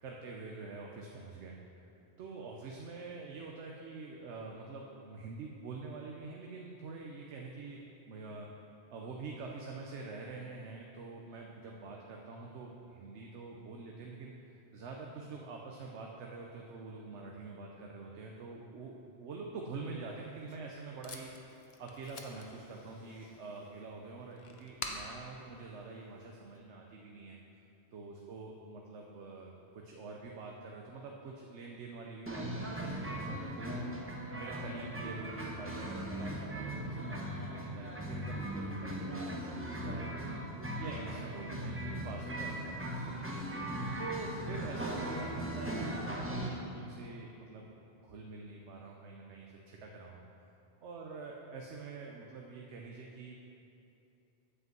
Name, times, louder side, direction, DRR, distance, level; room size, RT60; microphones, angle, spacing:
voice 1, 0.0-1.5 2.2-8.5 8.9-27.4 27.9-34.0 34.3-47.7 48.0-50.2 50.8-53.3, right 3 dB, 75° right, 0 dB, 1.1 m, -46 dB
Packing tape duct tape, 20.1-26.6, left 4 dB, 60° left, 1.0 m, -49 dB
sound 1, 32.3-46.5, right 1 dB, 10° right, 0.9 m, -39 dB
8.3 x 5.3 x 7.6 m, 2.8 s
omnidirectional pair, 1.2 m